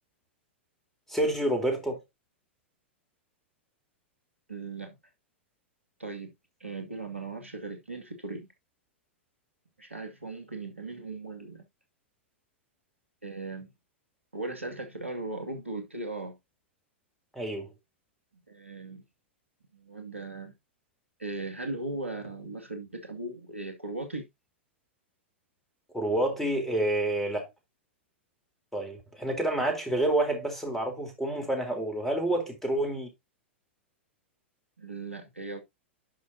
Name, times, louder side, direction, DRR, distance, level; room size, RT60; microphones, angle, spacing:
voice 1, 1.1-2.0 17.3-17.7 25.9-27.5 28.7-33.1, right 1 dB, 5° left, 3.6 m, -28 dB
voice 2, 4.5-5.0 6.0-6.3 6.6-8.5 9.8-11.7 13.2-13.7 14.3-16.4 18.5-19.0 19.7-20.5 21.2-24.3 34.8-35.6, right 2 dB, 90° right, 2.3 m, -38 dB
11.0 x 6.2 x 2.8 m
figure-of-eight pair, 100°, 7 cm